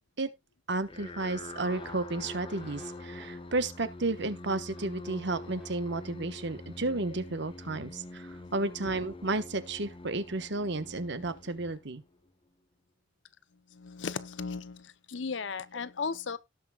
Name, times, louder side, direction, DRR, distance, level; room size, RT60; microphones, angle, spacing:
voice 1, 0.7-12.0, right 2 dB, 65° right, 1.2 m, -32 dB
sound 1, 0.8-12.3, left 2 dB, 30° left, 1.0 m, -45 dB
sound 2, 1.2-3.6 4.8-5.9 6.4-6.6, right 1 dB, ahead, 3.6 m, -50 dB
voice 2, 13.7-16.4, left 5 dB, 75° left, 0.7 m, -36 dB
17.5 x 5.9 x 2.3 m
head